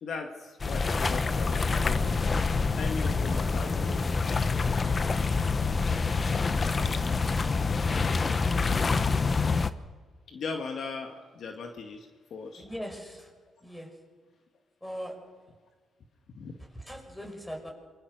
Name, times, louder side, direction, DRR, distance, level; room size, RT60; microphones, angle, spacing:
voice 1, 0.0-2.3 2.8-4.0 10.3-12.6 16.3-16.5, left 4 dB, 60° left, 4 dB, 2.2 m, -38 dB
sound 1, 0.6-9.7, left 4 dB, 35° left, 1.1 m, -26 dB
voice 2, 12.5-13.3 13.6-14.0 14.8-15.2 16.6-17.7, equal, 10° left, 3 dB, 5.7 m, -40 dB
27.0 x 23.0 x 6.5 m, 1.5 s
cardioid pair, 90°, 0 cm